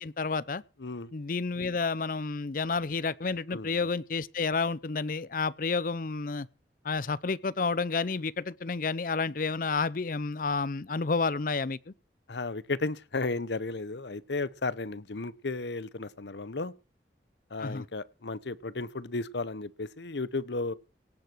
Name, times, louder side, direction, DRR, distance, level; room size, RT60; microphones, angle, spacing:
voice 1, 0.0-0.6 1.1-6.5 6.8-11.9 17.6-17.8, left 4 dB, 50° left, 0.6 m, -30 dB
voice 2, 0.8-1.1 3.5-3.7 12.3-16.7 17.5-20.7, left 3 dB, 85° left, 0.9 m, -34 dB
18.0 x 8.0 x 6.1 m
head